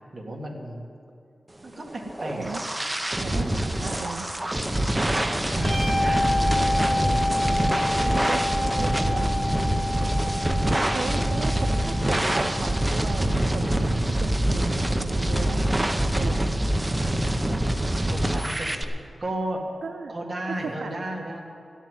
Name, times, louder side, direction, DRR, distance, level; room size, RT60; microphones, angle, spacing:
voice 1, 0.1-0.8 1.6-2.5 4.9-7.2 7.6-7.8 18.1-18.8 19.2-19.6 20.1-21.4, right 1 dB, 30° right, -1 dB, 1.9 m, -34 dB
sound 1, 1.9-18.8, right 1 dB, 10° right, 0.6 m, -25 dB
voice 2, 2.4-2.7 3.2-4.3 8.0-9.4 10.9-16.5 19.8-20.1 20.5-21.1, right 5 dB, 75° right, 6 dB, 0.6 m, -36 dB
sound 2, 5.5-13.0, left 2 dB, 40° left, 3.9 m, -29 dB
14.0 x 7.3 x 9.4 m, 2.4 s
wide cardioid pair, 150°, 0 cm